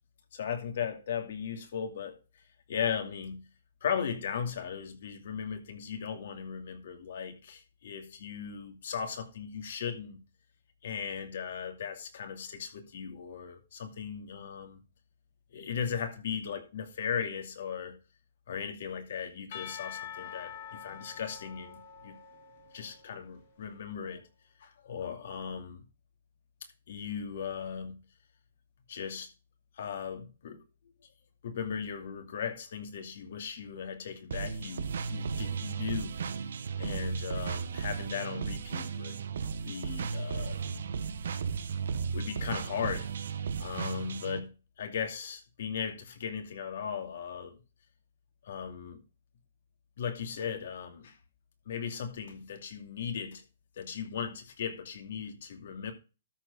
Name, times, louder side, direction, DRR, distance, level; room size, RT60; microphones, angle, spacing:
voice 1, 0.3-2.2 2.7-3.4 3.8-10.2 10.8-14.8 15.5-18.0 18.5-22.2 22.7-24.2 24.6-25.8 26.9-28.0 28.9-29.3 29.7-30.6 31.4-36.2 36.8-39.2 39.7-40.8 42.1-43.1 43.6-44.5 44.8-47.6 48.4-49.0 50.0-51.2 51.7-53.4 53.8-55.9, left 7 dB, 65° left, 2.6 m, -37 dB
Percussion / Church bell, 19.5-23.5, left 8 dB, 50° left, 3.2 m, -45 dB
sound 1, 34.3-44.4, right 6 dB, 75° right, 1.1 m, -35 dB
13.0 x 4.5 x 5.3 m
hypercardioid pair, 145°, 0 cm